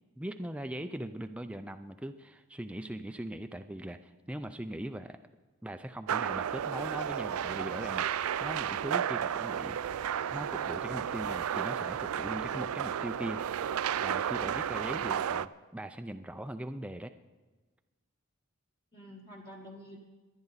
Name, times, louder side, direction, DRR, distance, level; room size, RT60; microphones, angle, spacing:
voice 1, 0.2-5.2 5.6-9.9 10.3-13.4 14.0-17.1, right 1 dB, 5° right, 7 dB, 0.4 m, -40 dB
sound 1, 6.1-15.5, right 9 dB, 70° right, 0.4 m, -33 dB
voice 2, 14.8-15.2 18.9-20.0, equal, 20° left, -2 dB, 1.2 m, -49 dB
23.5 x 9.9 x 4.1 m, 1.3 s
head